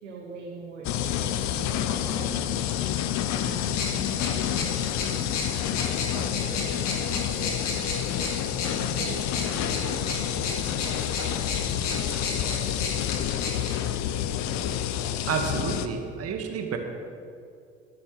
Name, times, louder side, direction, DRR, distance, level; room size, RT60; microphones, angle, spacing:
voice 1, 0.0-8.4 8.8-12.2 12.4-12.9, right 4 dB, 85° right, -1 dB, 1.4 m, -43 dB
sound 1, 0.8-15.9, left 10 dB, 50° left, 0.8 m, -28 dB
sound 2, 3.4-13.7, left 3 dB, 85° left, 1.9 m, -35 dB
voice 2, 15.3-16.8, right 5 dB, 40° right, 4 dB, 1.8 m, -30 dB
21.0 x 9.7 x 3.4 m, 2.5 s
hypercardioid pair, 65°, 36 cm